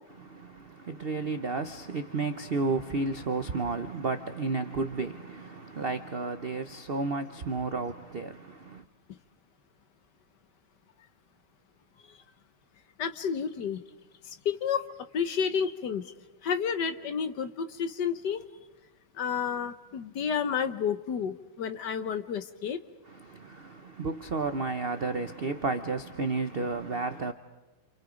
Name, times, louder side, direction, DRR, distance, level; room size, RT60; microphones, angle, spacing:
voice 1, 0.2-8.8 23.1-27.3, right 3 dB, 60° right, 0.6 m, -32 dB
voice 2, 13.0-13.8 14.4-14.9 15.1-16.0 16.4-18.4 19.2-22.8, left 7 dB, 60° left, 1.5 m, -30 dB
28.5 x 28.0 x 5.1 m
omnidirectional pair, 2.2 m